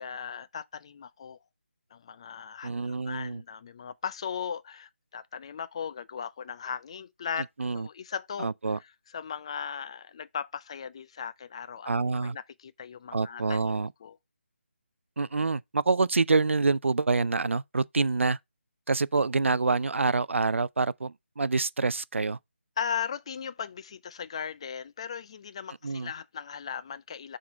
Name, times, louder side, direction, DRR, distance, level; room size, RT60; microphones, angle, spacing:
voice 1, 0.0-1.4 1.9-7.5 7.7-11.9 12.2-14.2 22.8-27.4, left 7 dB, 25° left, 0.3 m, -37 dB
voice 2, 2.6-3.4 7.6-7.9 8.4-8.8 11.9-12.4 13.1-13.9 15.2-18.4 18.9-22.4 25.8-26.1, right 3 dB, 80° right, 0.4 m, -26 dB
7.0 x 3.7 x 4.6 m
figure-of-eight pair, 160°, 7 cm